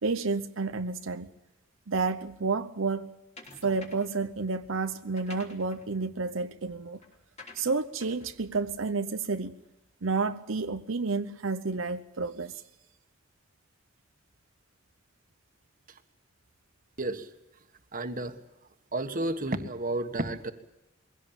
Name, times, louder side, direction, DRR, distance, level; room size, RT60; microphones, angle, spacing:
voice 1, 0.0-1.3 1.9-3.1 3.6-7.0 7.5-9.6 10.0-12.6, right 4 dB, 85° right, 0.8 m, -30 dB
sound 1, 3.4-4.2 5.0-9.7, left 3 dB, 35° left, 3.5 m, -52 dB
voice 2, 17.0-17.3 17.9-18.4 18.9-20.5, right 2 dB, 45° right, 1.6 m, -32 dB
22.5 x 17.0 x 9.0 m
head